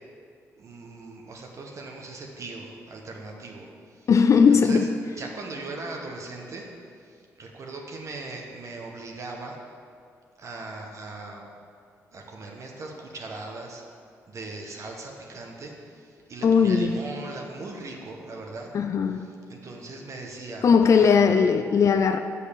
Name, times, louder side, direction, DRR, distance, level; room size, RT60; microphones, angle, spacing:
voice 1, 0.5-4.1 4.5-4.9 5.2-6.7 7.0-9.6 10.4-11.4 12.1-13.8 14.3-18.7 19.1-21.3, right 3 dB, 55° right, 0 dB, 1.2 m, -39 dB
voice 2, 4.1-4.9 16.4-17.0 18.7-19.3 20.6-22.2, left 6 dB, 50° left, 7 dB, 0.4 m, -18 dB
6.3 x 5.6 x 6.9 m, 2.2 s
supercardioid pair, 65°, 6 cm